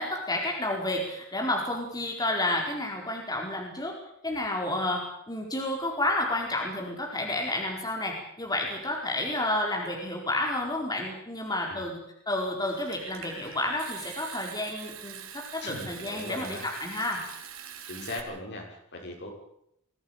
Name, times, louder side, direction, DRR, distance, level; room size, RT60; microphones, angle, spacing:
voice 1, 0.0-3.9 4.2-5.0 5.3-12.0 12.3-17.2, left 1 dB, 20° left, 0 dB, 4.6 m, -30 dB
Water tap faucet / Sink (filling or washing) / Trickle dribble, 12.6-18.2, right 8 dB, 75° right, 3.1 m, -44 dB
voice 2, 15.6-16.7 17.9-19.3, left 1 dB, 55° left, 1 dB, 6.4 m, -39 dB
22.5 x 16.5 x 9.0 m, 0.76 s
head